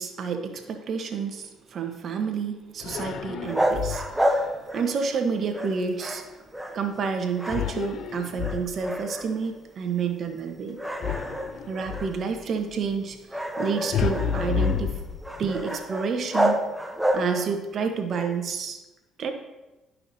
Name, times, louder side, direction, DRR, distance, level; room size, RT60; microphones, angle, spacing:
voice 1, 0.0-6.2 6.7-10.8 11.7-15.0 15.4-16.7 17.1-18.8 19.2-19.3, right 5 dB, 55° right, 6 dB, 1.1 m, -29 dB
sound 1, 2.8-4.3 7.5-9.1 11.0-12.2 13.9-15.6, left 7 dB, 60° left, 0.4 m, -30 dB
sound 2, 3.5-5.2 5.5-7.1 7.3-8.1 8.4-9.6 10.0-10.2 10.8-17.6, equal, 5° right, 0.9 m, -29 dB
11.0 x 5.7 x 2.8 m, 1.1 s
supercardioid pair, 65°, 0 cm